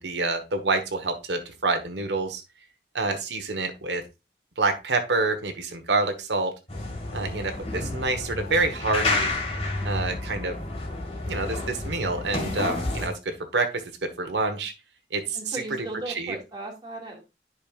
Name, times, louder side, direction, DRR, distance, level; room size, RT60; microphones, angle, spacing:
voice 1, 0.0-2.4 2.9-4.0 4.6-6.5 7.1-9.3 9.8-10.6 11.2-14.7 15.1-16.4, right 3 dB, 85° right, 5 dB, 1.3 m, -27 dB
sound 1, 6.7-13.1, left 2 dB, 35° left, 2.1 m, -30 dB
voice 2, 15.4-17.2, right 2 dB, 25° right, 0 dB, 2.2 m, -37 dB
10.5 x 5.4 x 2.4 m, 0.26 s
head